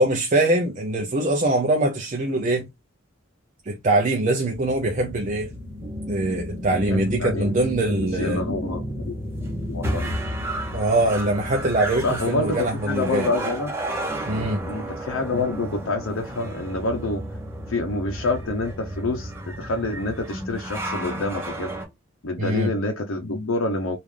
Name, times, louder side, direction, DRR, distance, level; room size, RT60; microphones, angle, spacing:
voice 1, 0.0-2.7 3.6-5.5 6.1-8.4 10.7-13.3 14.3-14.6 22.4-22.7, right 2 dB, 35° right, 0.5 m, -23 dB
sound 1, 4.5-21.8, right 1 dB, 10° right, 1.0 m, -32 dB
voice 2, 6.9-7.5 7.8-9.2 9.7-10.1 12.0-13.7 14.6-17.2 17.7-21.7 22.2-24.0, left 2 dB, 80° left, 0.7 m, -27 dB
3.6 x 2.5 x 3.1 m
head